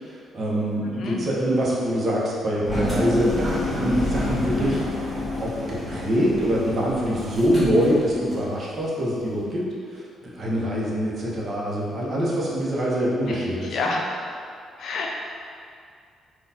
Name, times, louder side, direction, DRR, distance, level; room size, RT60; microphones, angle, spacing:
voice 1, 0.0-4.8 5.4-13.8, equal, 45° right, -5 dB, 0.8 m, -24 dB
Engine, 2.7-8.5, left 1 dB, ahead, 1.1 m, -28 dB
voice 2, 13.7-14.0 14.8-15.1, left 3 dB, 65° left, -1 dB, 0.5 m, -27 dB
3.8 x 2.3 x 2.7 m, 2.3 s
cardioid pair, 90°, 0 cm